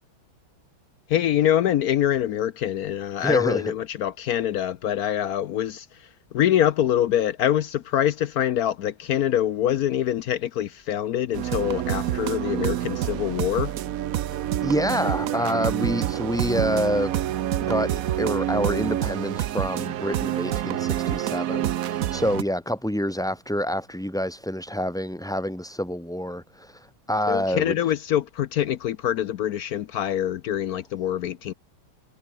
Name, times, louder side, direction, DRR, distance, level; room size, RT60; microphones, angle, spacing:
voice 1, 1.1-5.9 6.3-13.7 27.3-31.5, left 11 dB, 75° left, 0.8 m, -24 dB
voice 2, 3.2-3.7 14.6-17.1 17.7-17.9 18.2-27.8, equal, ahead, 2.0 m, -27 dB
sound 1, 11.3-22.4, right 12 dB, 75° right, 0.8 m, -27 dB
omnidirectional pair, 2.3 m